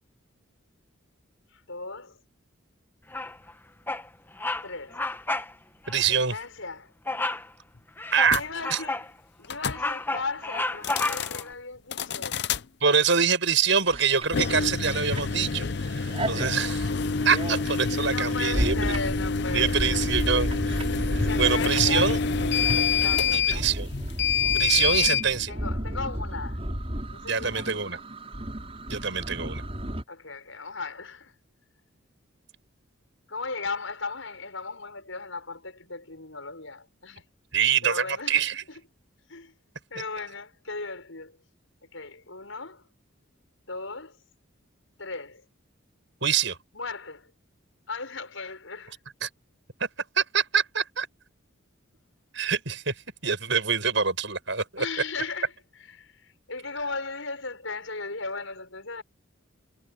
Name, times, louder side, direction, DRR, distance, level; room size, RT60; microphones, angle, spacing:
voice 1, 1.5-2.2 4.6-5.0 6.1-6.9 8.0-9.1 9.4-12.5 18.1-20.0 21.2-22.2 22.8-23.7 24.5-25.1 25.5-26.6 27.1-28.0 30.1-31.4 33.3-37.2 37.8-38.8 39.3-39.5 39.9-41.4 41.9-42.9 43.7-44.2 45.0-45.4 46.7-47.3 47.9-49.0 54.8-59.0, left 4 dB, 75° left, 6.5 m, -37 dB
Bird vocalization bird call bird song, 3.1-3.5 3.9-4.1 4.4-4.7 4.9-5.5 5.8-6.0 7.1-7.5 8.0-9.1 9.5-11.4, left 2 dB, 10° left, 1.1 m, -31 dB
voice 2, 5.9-6.3 8.1-8.4 8.7-8.8 12.8-16.9 17.2-19.0 19.5-22.2 23.3-23.9 24.5-25.5 27.3-28.0 28.9-29.6 37.5-38.6 46.2-46.6 49.2-49.3 49.8-49.9 50.2-51.1 52.3-52.9 53.2-54.8, right 6 dB, 65° right, 7.7 m, -25 dB
sound 1, 8.3-8.4 9.4-9.8 10.7-11.4 11.9-12.6 14.2-25.3, left 5 dB, 55° left, 0.7 m, -27 dB
sound 2, 13.7-15.7 16.1-30.0, equal, 30° right, 5.1 m, -33 dB
head